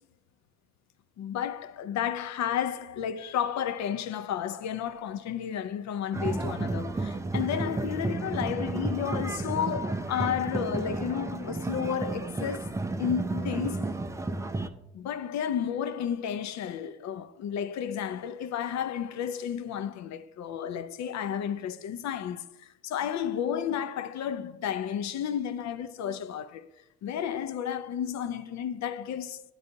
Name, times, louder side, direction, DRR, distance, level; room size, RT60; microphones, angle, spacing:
voice 1, 1.2-12.7 13.0-13.9 14.9-26.7 27.0-29.4, left 9 dB, 55° left, 0.5 m, -32 dB
sound 1, 6.1-14.7, right 2 dB, 10° right, 0.3 m, -32 dB
9.6 x 4.0 x 2.6 m
hypercardioid pair, 60°, 34 cm